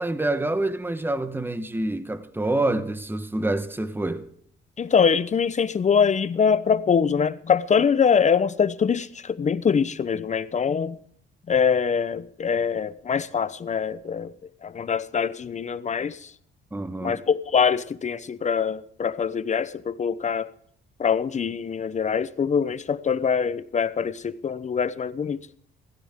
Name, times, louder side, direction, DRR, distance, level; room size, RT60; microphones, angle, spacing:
voice 1, 0.0-4.3 16.7-17.2, right 2 dB, 10° right, 1.2 m, -27 dB
voice 2, 4.8-11.0 11.5-14.3 14.6-16.2 17.0-20.5 21.0-25.6, left 6 dB, 35° left, 0.8 m, -23 dB
17.0 x 15.5 x 3.7 m
cardioid pair, 90°, 20 cm